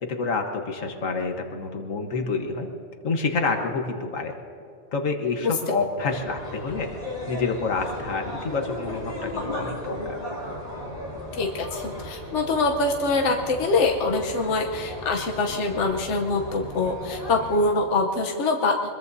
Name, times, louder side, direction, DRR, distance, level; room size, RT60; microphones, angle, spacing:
voice 1, 0.0-2.7 3.0-4.3 4.9-6.9 7.3-10.2, left 4 dB, 80° left, 4 dB, 1.7 m, -28 dB
sound 1, 6.0-17.7, left 1 dB, 35° left, 3.6 m, -36 dB
voice 2, 11.4-18.9, left 3 dB, 65° left, 2 dB, 1.3 m, -24 dB
24.0 x 21.5 x 2.7 m, 2.5 s
omnidirectional pair, 1.3 m